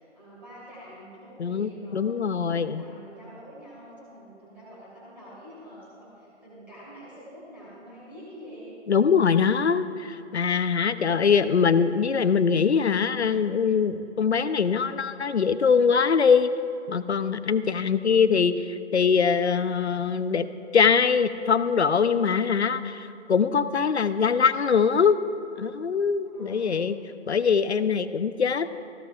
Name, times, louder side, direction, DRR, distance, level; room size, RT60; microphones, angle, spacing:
voice 1, 0.0-8.7 26.2-26.9, equal, 5° right, -9 dB, 2.4 m, -46 dB
voice 2, 1.4-2.8 8.9-16.5 16.9-20.5 20.7-25.2 25.6-27.0 27.3-28.7, left 6 dB, 65° left, 13 dB, 0.7 m, -22 dB
18.5 x 15.5 x 2.5 m, 2.7 s
figure-of-eight pair, 170°, 36 cm